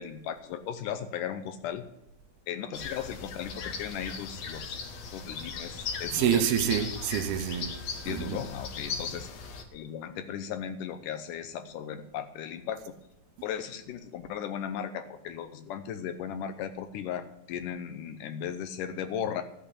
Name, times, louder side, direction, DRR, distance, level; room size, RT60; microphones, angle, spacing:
voice 1, 0.0-1.8 2.5-4.8 5.1-6.4 8.1-9.3 9.7-12.9 13.4-19.4, left 9 dB, 85° left, 1.9 m, -36 dB
sound 1, 2.7-9.6, left 5 dB, 60° left, 1.8 m, -38 dB
voice 2, 6.1-7.7 8.1-8.4, right 9 dB, 75° right, 2.7 m, -27 dB
13.5 x 5.7 x 8.2 m
omnidirectional pair, 4.7 m